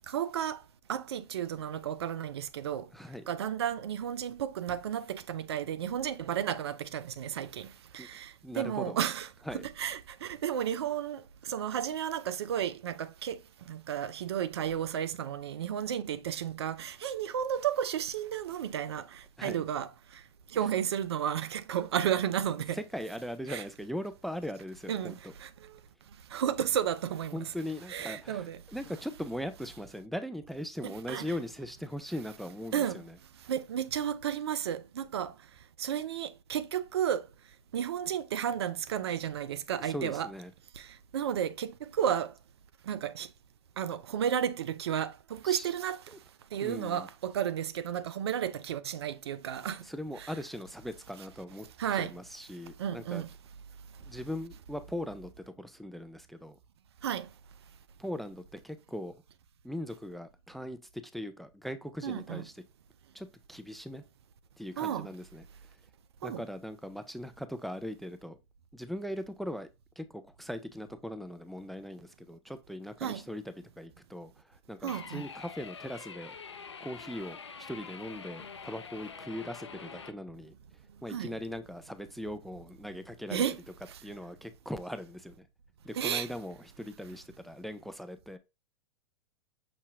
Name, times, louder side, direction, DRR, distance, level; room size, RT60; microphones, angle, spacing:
voice 1, 0.1-0.6 0.9-2.9 3.3-7.7 7.9-9.3 9.5-13.4 13.7-20.2 20.5-22.8 23.5-23.6 24.9-25.7 26.3-27.5 27.9-28.6 30.8-31.3 32.7-33.0 33.5-35.3 35.8-37.3 37.7-40.3 40.8-42.3 42.9-43.3 43.8-46.0 46.5-49.8 50.2-50.3 51.8-52.1 52.8-53.3 57.0-57.3 62.0-62.4 64.8-65.1 66.2-66.4 73.0-73.2 74.8-75.2 81.1-81.3 83.3-83.6 83.9-84.0 85.9-86.3, right 9 dB, 70° right, 0.5 m, -33 dB
voice 2, 2.9-3.2 8.0-8.1 8.4-9.0 9.5-9.6 19.4-19.6 22.8-25.3 27.3-33.1 39.8-40.5 45.5-45.7 46.1-46.2 46.6-47.1 49.8-51.7 51.9-53.2 54.0-56.6 58.0-59.1 59.6-62.5 63.1-64.0 64.6-65.4 66.2-68.4 68.7-69.7 70.0-73.4 73.8-76.4 76.8-80.5 81.0-83.4 84.0-85.4 85.8-88.4, equal, ahead, 0.4 m, -40 dB
sound 1, 74.9-80.1, left 5 dB, 90° left, 0.5 m, -45 dB
6.0 x 2.7 x 2.5 m
hypercardioid pair, 100°, 14 cm